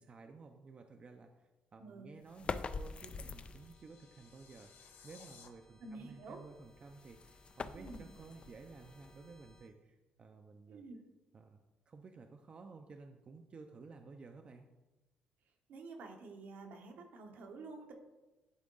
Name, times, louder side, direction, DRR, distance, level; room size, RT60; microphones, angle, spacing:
voice 1, 0.0-10.8 11.3-11.6 11.9-14.7, right 4 dB, 40° right, 5 dB, 0.5 m, -54 dB
voice 2, 1.8-2.1 5.8-6.4 7.7-8.0 10.7-11.0 15.7-17.9, right 3 dB, 75° right, 3 dB, 1.1 m, -49 dB
sound 1, 2.3-3.9 6.6-9.6, left 4 dB, 35° left, 0.3 m, -45 dB
sound 2, 2.5-9.7, equal, 10° left, 0.8 m, -65 dB
sound 3, 3.2-5.5, left 7 dB, 75° left, 0.7 m, -61 dB
10.5 x 3.7 x 3.9 m, 1.1 s
cardioid pair, 100°, 3 cm